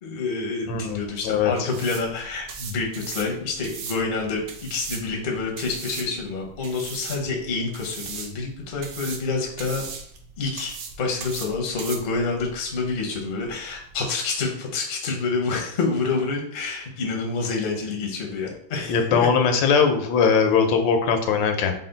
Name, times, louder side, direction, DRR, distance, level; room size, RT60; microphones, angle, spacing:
voice 1, 0.0-9.8 10.4-19.3, left 4 dB, 60° left, 0 dB, 0.5 m, -28 dB
sound 1, 0.6-14.1, right 5 dB, 70° right, 0.9 m, -39 dB
voice 2, 0.7-1.7 18.9-21.7, left 6 dB, 90° left, 6 dB, 1.4 m, -20 dB
4.2 x 2.1 x 3.9 m, 0.66 s
omnidirectional pair, 2.0 m